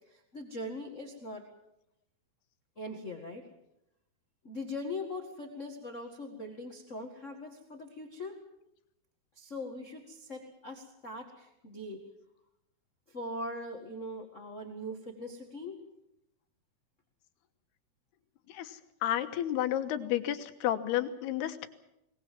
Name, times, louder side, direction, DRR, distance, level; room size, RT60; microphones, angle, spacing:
voice 1, 0.1-1.4 2.8-3.5 4.4-8.4 9.3-12.0 13.1-15.8, left 1 dB, 35° left, 3 dB, 1.3 m, -41 dB
voice 2, 18.5-21.7, left 12 dB, 90° left, 9 dB, 3.2 m, -31 dB
22.5 x 20.0 x 7.6 m, 0.83 s
omnidirectional pair, 4.5 m